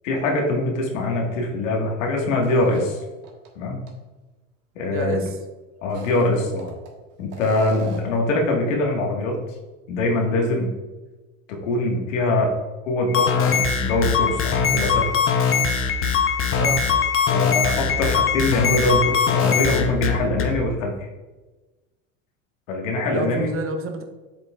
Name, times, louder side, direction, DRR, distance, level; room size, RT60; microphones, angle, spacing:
voice 1, 0.0-3.0 3.5-3.8 4.7-5.2 5.8-6.7 7.2-9.4 9.9-10.7 11.5-12.5 12.8-15.0 17.3-21.1 22.7-23.5, left 2 dB, 75° left, 0 dB, 1.7 m, -23 dB
sound 1, 2.4-3.5 3.9-4.0 5.8-6.9 7.3-8.2, right 3 dB, 55° right, 1.5 m, -40 dB
voice 2, 4.9-5.4 6.1-6.4 16.6-16.9 23.1-24.0, right 3 dB, 35° right, 5 dB, 0.9 m, -30 dB
sound 2, 13.1-20.5, left 6 dB, 35° left, 0.8 m, -21 dB
7.4 x 5.3 x 2.4 m, 1.2 s
hypercardioid pair, 90°, 38 cm